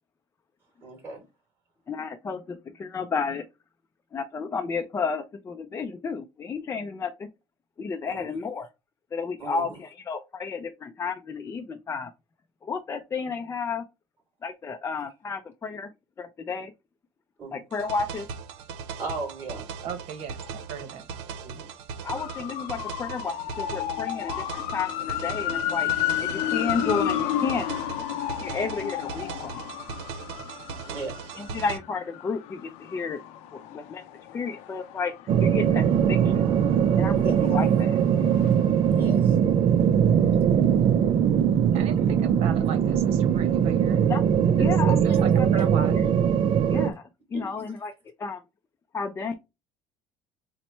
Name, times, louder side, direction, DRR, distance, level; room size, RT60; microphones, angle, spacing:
voice 1, 0.8-1.2 8.0-8.3 9.4-9.8 17.4-17.6 19.0-19.7 21.4-21.7 30.9-31.3 37.1-37.4 39.0-39.4 40.8-41.0 45.0-45.3 47.3-47.7, right 3 dB, 20° right, 2.7 m, -36 dB
voice 2, 1.9-3.4 4.1-7.3 7.8-8.7 9.1-12.1 12.6-13.8 14.4-15.9 16.2-16.7 17.5-18.3 22.0-25.9 26.2-27.7 28.4-29.7 31.3-33.2 33.5-34.0 34.3-35.1 35.4-36.5 37.0-38.0 44.1-44.2 44.6-46.0 46.7-47.9 48.2-48.4 48.9-49.3, left 5 dB, 25° left, 0.5 m, -32 dB
sound 1, 17.7-31.8, right 6 dB, 85° right, 0.7 m, -39 dB
voice 3, 19.8-21.4 37.4-37.6 41.7-44.1 44.4-45.9, right 8 dB, 65° right, 1.0 m, -37 dB
sound 2, 22.2-35.9 36.3-38.9 39.1-39.2, left 12 dB, 80° left, 0.6 m, -32 dB
sound 3, 35.3-46.9, right 8 dB, 50° right, 0.4 m, -21 dB
4.1 x 2.1 x 4.4 m
cardioid pair, 125°, 11 cm